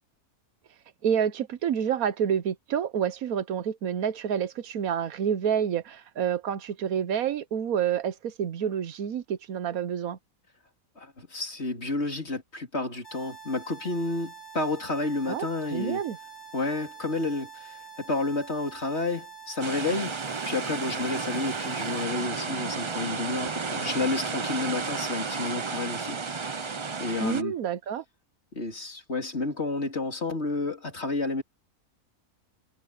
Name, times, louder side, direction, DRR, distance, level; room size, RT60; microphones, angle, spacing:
voice 1, 1.0-10.2 15.3-16.2 27.2-28.0, right 8 dB, 65° right, 1.3 m, -28 dB
voice 2, 11.0-16.0 16.5-20.2 20.5-26.7 27.0-27.5 28.5-31.4, left 2 dB, 40° left, 3.8 m, -31 dB
sound 1, 13.0-22.0, right 6 dB, 70° left, 4.4 m, -46 dB
sound 2, 19.6-27.4, right 4 dB, 40° right, 0.4 m, -32 dB
omnidirectional pair, 1.7 m